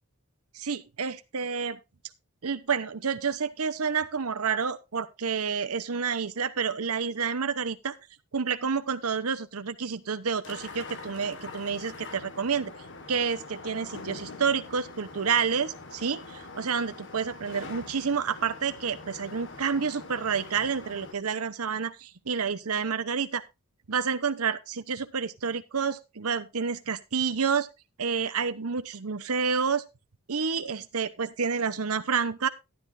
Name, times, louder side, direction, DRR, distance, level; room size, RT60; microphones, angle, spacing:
voice 1, 0.5-1.8 2.4-7.9 8.3-12.7 13.1-23.4 23.9-27.7 28.0-29.8 30.3-32.5, right 6 dB, 85° right, 11 dB, 0.9 m, -29 dB
sound 1, 10.4-21.1, left 3 dB, 60° left, 1.7 m, -44 dB
12.0 x 11.5 x 2.6 m, 0.25 s
head